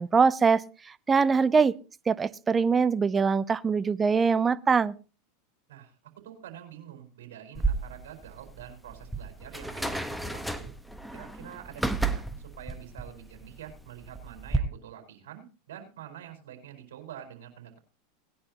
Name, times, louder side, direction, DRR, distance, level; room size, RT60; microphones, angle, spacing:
voice 1, 0.0-1.8 2.1-4.9, right 5 dB, 20° right, 0.6 m, -23 dB
voice 2, 6.2-10.7 11.1-17.8, right 10 dB, 80° right, 4.6 m, -46 dB
sound 1, 7.5-14.6, right 3 dB, ahead, 1.2 m, -33 dB
19.5 x 10.5 x 2.9 m
hypercardioid pair, 105°, 0 cm